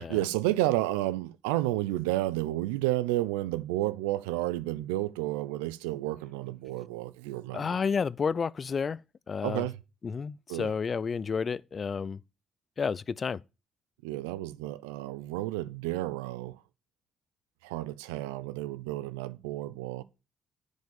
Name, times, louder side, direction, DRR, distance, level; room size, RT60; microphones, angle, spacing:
voice 1, 0.0-7.7 9.4-9.8 10.5-10.7 14.0-16.6 17.6-20.0, right 16 dB, 85° right, 0.5 m, -31 dB
voice 2, 7.5-9.0 9.3-9.7 10.0-12.2 12.8-13.4, left 5 dB, 45° left, 0.5 m, -31 dB
10.5 x 5.3 x 7.2 m
hypercardioid pair, 50°, 0 cm